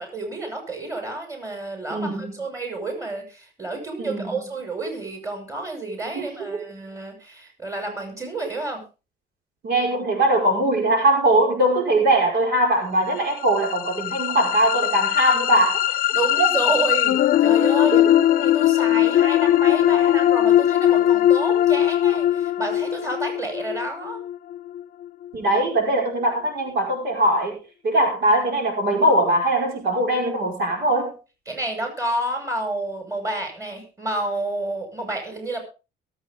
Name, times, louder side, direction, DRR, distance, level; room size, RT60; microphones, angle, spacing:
voice 1, 0.0-8.8 16.1-24.2 31.5-35.6, right 2 dB, 20° right, 3 dB, 6.0 m, -30 dB
voice 2, 1.9-2.3 4.0-4.3 6.1-6.7 9.6-16.0 17.9-18.0 25.3-27.6 27.8-31.1, right 1 dB, 70° right, 1 dB, 5.3 m, -21 dB
sound 1, 13.2-25.3, left 12 dB, 55° left, 0.6 m, -20 dB
22.5 x 8.3 x 3.7 m, 0.32 s
cardioid pair, 110°, 17 cm